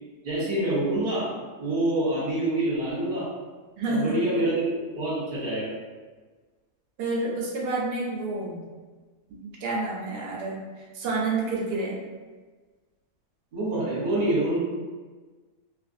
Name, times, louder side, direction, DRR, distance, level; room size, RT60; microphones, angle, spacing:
voice 1, 0.2-1.3 1.6-3.3 3.9-5.7 13.5-14.6, right 1 dB, 40° right, -7 dB, 1.1 m, -26 dB
voice 2, 3.8-4.1 7.0-8.6 9.4-10.6 10.9-12.0, right 2 dB, 90° right, -3 dB, 1.2 m, -29 dB
2.9 x 2.5 x 2.5 m, 1.3 s
omnidirectional pair, 1.7 m